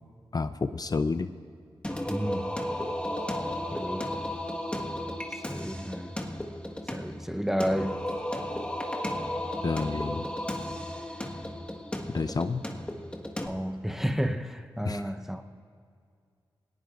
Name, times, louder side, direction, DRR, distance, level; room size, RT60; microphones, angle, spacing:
voice 1, 0.3-1.3 9.6-10.3 12.1-12.7 14.8-15.0, left 4 dB, 45° left, 0.5 m, -29 dB
Singing, 1.8-13.5, left 1 dB, 10° left, 1.5 m, -34 dB
voice 2, 2.1-2.5 3.7-4.1 5.5-6.1 6.9-8.0 13.5-15.5, equal, 5° right, 0.8 m, -31 dB
20.5 x 18.0 x 2.5 m
cardioid pair, 45°, 10 cm